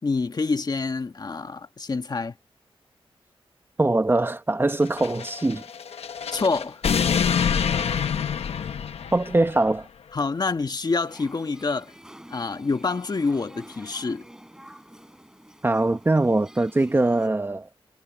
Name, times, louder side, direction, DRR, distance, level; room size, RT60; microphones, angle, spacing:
voice 1, 0.0-2.3 6.3-6.8 10.1-11.9 12.3-14.2, left 4 dB, 40° left, 1.3 m, -27 dB
voice 2, 3.8-5.6 9.1-9.9 15.6-17.7, right 2 dB, 20° right, 1.0 m, -22 dB
sound 1, 4.9-9.6, left 7 dB, 85° left, 1.0 m, -26 dB
sound 2, 11.0-17.3, right 1 dB, 5° right, 7.0 m, -48 dB
wide cardioid pair, 90°, 10 cm